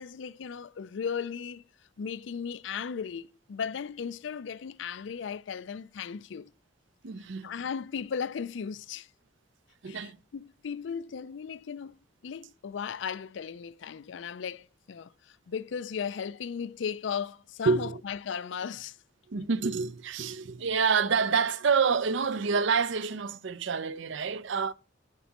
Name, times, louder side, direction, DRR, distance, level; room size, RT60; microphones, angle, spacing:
voice 1, 0.0-1.6 2.0-6.5 7.4-9.1 9.9-12.0 12.2-19.0, left 6 dB, 65° left, 0.4 m, -36 dB
voice 2, 7.0-7.5 9.8-10.2 17.7-18.0 19.3-24.7, right 5 dB, 70° right, 0.5 m, -27 dB
10.5 x 7.4 x 2.9 m
head